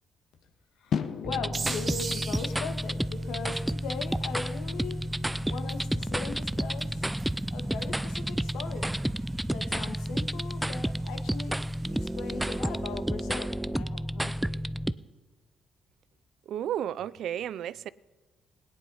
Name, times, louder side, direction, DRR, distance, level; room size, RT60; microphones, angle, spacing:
voice 1, 0.8-5.0 5.5-7.1 7.5-8.9 9.5-11.6 12.0-14.6, left 5 dB, 90° left, 1.6 m, -39 dB
sound 1, 0.9-7.1, left 7 dB, 65° left, 1.0 m, -40 dB
sound 2, 1.2-14.9, right 1 dB, 5° right, 0.4 m, -31 dB
sound 3, 1.5-12.9, right 4 dB, 40° right, 1.9 m, -45 dB
voice 2, 16.5-17.9, right 10 dB, 75° right, 0.4 m, -33 dB
17.0 x 9.7 x 5.6 m
cardioid pair, 90°, 0 cm